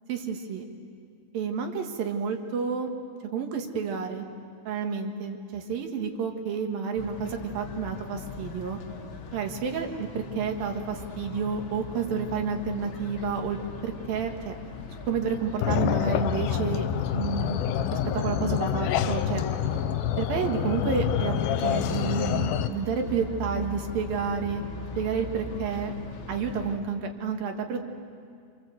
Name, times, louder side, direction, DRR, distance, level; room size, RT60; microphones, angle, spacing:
voice 1, 0.1-0.6 1.3-2.9 3.3-4.2 4.7-8.8 9.3-13.6 13.8-14.6 15.1-16.9 17.1-17.6 17.9-19.4 20.2-24.6 25.0-25.9 26.3-27.8, right 6 dB, 70° right, 4 dB, 3.4 m, -30 dB
sound 1, 6.9-26.8, left 3 dB, 55° left, 1.5 m, -40 dB
sound 2, 15.6-22.7, left 10 dB, 80° left, 2.6 m, -27 dB
27.5 x 25.5 x 8.0 m, 2.2 s
omnidirectional pair, 4.4 m